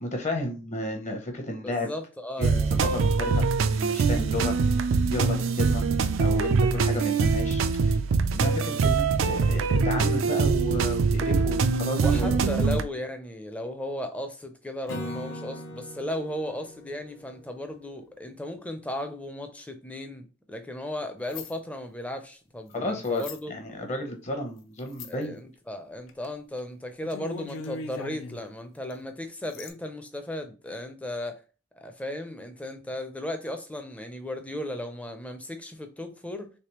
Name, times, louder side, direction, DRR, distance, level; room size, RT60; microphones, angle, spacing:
voice 1, 0.0-1.9 2.4-3.4 3.7-4.6 5.1-5.8 6.2-8.0 8.3-12.4 22.7-25.4, left 1 dB, 35° left, 0.7 m, -32 dB
voice 2, 1.6-3.0 12.0-23.5 25.1-31.4 31.8-36.5, left 1 dB, 5° left, 0.4 m, -36 dB
sound 1, 2.4-12.8, right 4 dB, 90° right, 0.4 m, -23 dB
Acoustic guitar / Strum, 14.9-18.2, equal, 65° left, 0.9 m, -40 dB
sound 2, 21.3-21.5 23.0-23.4 24.9-25.2 26.1-26.3 26.6-26.7 27.0-28.4 28.9-29.0 29.5-29.7, left 3 dB, 80° left, 0.5 m, -39 dB
3.3 x 3.1 x 3.0 m
head